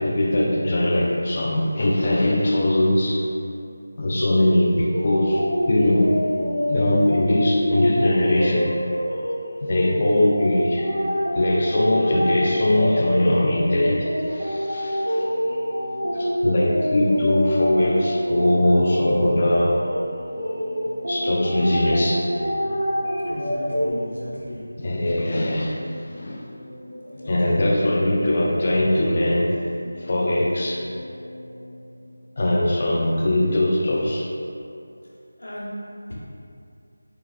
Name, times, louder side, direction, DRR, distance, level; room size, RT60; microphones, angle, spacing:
voice 1, 0.0-3.2 4.0-6.1 6.7-8.7 9.6-10.9 11.3-15.2 16.1-19.8 21.1-22.3 24.8-26.4 27.3-29.6 30.0-30.8 32.4-34.3, left 1 dB, 40° left, -3 dB, 0.3 m, -21 dB
sound 1, 4.9-23.9, equal, 65° right, 0.7 m, -26 dB
sound 2, 14.9-32.2, left 1 dB, 40° right, 1.1 m, -41 dB
voice 2, 23.2-24.8 27.0-27.7 35.4-36.2, equal, 80° left, -6 dB, 0.9 m, -35 dB
3.7 x 2.3 x 2.4 m, 2.5 s
figure-of-eight pair, 170°, 0 cm